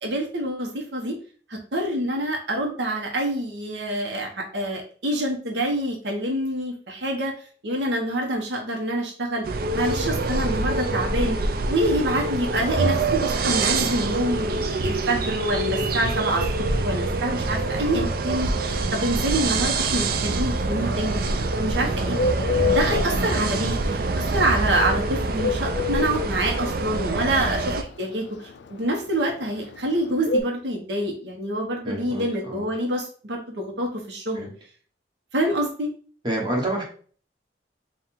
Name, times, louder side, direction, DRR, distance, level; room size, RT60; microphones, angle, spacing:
voice 1, 0.0-1.2 1.5-7.3 7.6-9.5 9.7-11.4 11.7-16.4 16.8-21.2 21.6-22.2 22.6-34.5 35.3-35.9, right 1 dB, 75° right, 1 dB, 0.8 m, -26 dB
sound 1, 9.4-27.8, right 3 dB, 55° right, 0.4 m, -25 dB
Bird, 20.5-30.4, left 4 dB, 70° left, 0.3 m, -27 dB
voice 2, 21.9-22.2 27.2-27.5 31.8-32.7 34.3-34.5 36.2-36.8, right 1 dB, 25° right, -2 dB, 1.2 m, -30 dB
3.7 x 2.4 x 4.3 m, 0.43 s
head